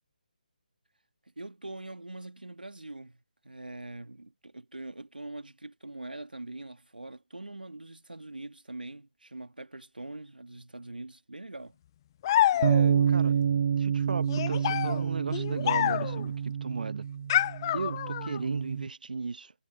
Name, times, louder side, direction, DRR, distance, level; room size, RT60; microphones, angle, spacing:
voice 1, 1.4-11.8 12.5-13.0, right 2 dB, 90° right, 1.8 m, -43 dB
sound 1, 12.2-13.1 14.3-16.3 17.3-18.4, left 12 dB, 30° left, 0.7 m, -28 dB
sound 2, 12.6-18.9, right 8 dB, 40° right, 0.4 m, -28 dB
voice 2, 13.7-17.1 17.7-19.5, right 4 dB, 70° right, 0.7 m, -36 dB
figure-of-eight pair, 150°, 5 cm